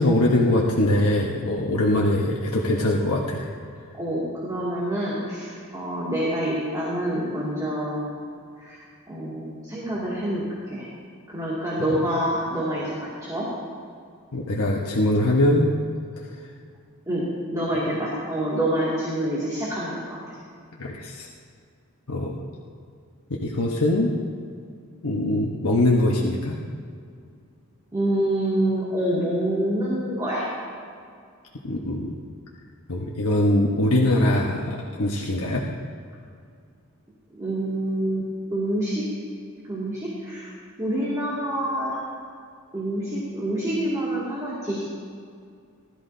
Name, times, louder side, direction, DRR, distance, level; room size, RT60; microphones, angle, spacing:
voice 1, 0.0-3.5 11.9-12.0 14.3-15.7 16.2-16.3 20.8-21.3 22.1-22.4 23.4-24.1 25.0-26.5 31.6-32.1 32.9-35.6, left 1 dB, 80° left, -2 dB, 1.1 m, -22 dB
voice 2, 4.0-8.1 8.6-10.9 11.3-13.5 17.1-20.2 27.9-30.5 37.4-39.1 39.6-40.5 40.8-41.9 42.7-44.8, right 1 dB, 15° right, -8 dB, 2.3 m, -27 dB
19.5 x 13.0 x 2.7 m, 2.3 s
head